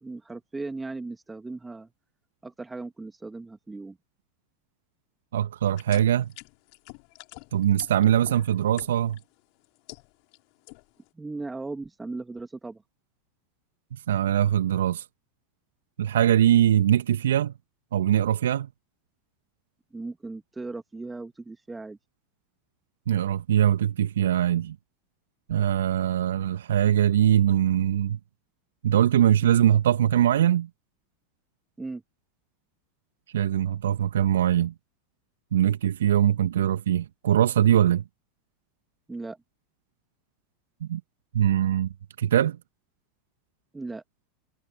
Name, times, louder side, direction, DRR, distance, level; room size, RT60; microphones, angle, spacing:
voice 1, 0.0-1.9 2.4-4.0 11.1-12.8 19.9-22.0 31.8-32.0 39.1-39.4 43.7-44.0, right 3 dB, 10° right, 2.4 m, -37 dB
voice 2, 5.3-6.3 7.5-9.2 13.9-15.0 16.0-17.5 17.9-18.7 23.1-24.8 25.5-28.2 28.8-30.7 33.3-34.7 35.5-38.0 40.8-41.0 41.3-41.9 42.2-42.6, right 10 dB, 70° right, 1.7 m, -22 dB
sound 1, 5.7-9.2 9.6-10.4 10.7-11.1, left 35 dB, 55° left, 2.9 m, -46 dB
figure-of-eight pair, 85°, 0 cm